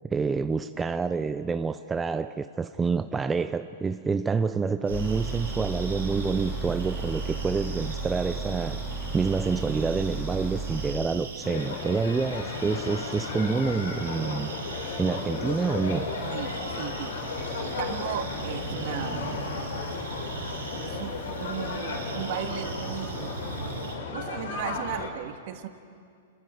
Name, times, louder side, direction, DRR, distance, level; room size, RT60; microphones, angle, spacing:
voice 1, 0.1-8.8 9.1-14.5 15.0-16.1, right 5 dB, 15° right, 0.5 m, -27 dB
sound 1, 4.9-10.9, right 3 dB, 35° left, 3.1 m, -33 dB
sound 2, 4.9-23.9, right 5 dB, 90° right, 3.6 m, -40 dB
sound 3, 11.4-25.1, left 4 dB, 75° left, 3.6 m, -34 dB
voice 2, 16.3-17.1 17.6-19.5 20.8-23.3 24.1-25.7, right 11 dB, 55° right, 1.6 m, -36 dB
28.5 x 22.0 x 5.1 m
hypercardioid pair, 125°, 0 cm